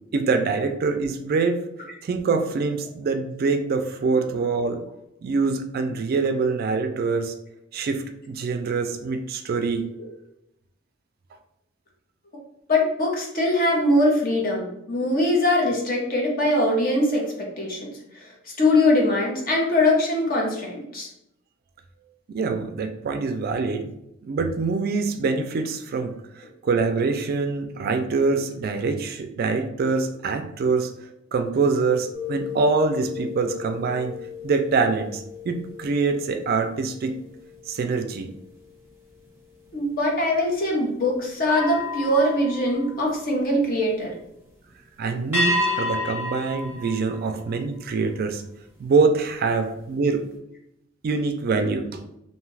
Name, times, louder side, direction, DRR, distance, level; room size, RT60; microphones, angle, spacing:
voice 1, 0.1-1.6 2.0-4.8 5.2-7.3 7.7-9.9 22.3-23.9 24.2-30.9 31.3-34.1 34.4-37.2 37.7-38.3 45.0-48.4 48.8-50.2 51.0-52.0, right 4 dB, 50° right, 7 dB, 0.3 m, -24 dB
voice 2, 12.7-18.3 18.6-21.1 39.7-44.1, left 1 dB, 45° left, -2 dB, 0.8 m, -22 dB
sound 1, 32.1-37.7 38.2-38.5 41.4-43.6 45.3-47.9, left 2 dB, 10° right, 0.9 m, -31 dB
2.7 x 2.3 x 3.2 m, 0.82 s
head